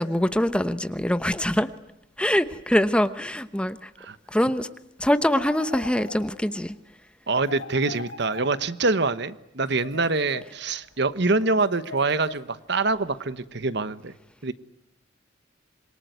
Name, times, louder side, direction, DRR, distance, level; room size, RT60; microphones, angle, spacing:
voice 1, 0.0-1.7 2.2-3.9 4.3-4.7 5.0-6.8, equal, 5° left, 11 dB, 1.0 m, -23 dB
sound 1, 5.3-6.6 7.4-9.0 9.7-10.8 11.6-12.8, left 3 dB, 85° left, 4.0 m, -41 dB
voice 2, 7.3-14.1 14.4-14.5, right 3 dB, 60° right, 14 dB, 1.1 m, -25 dB
26.5 x 23.0 x 9.4 m, 0.86 s
head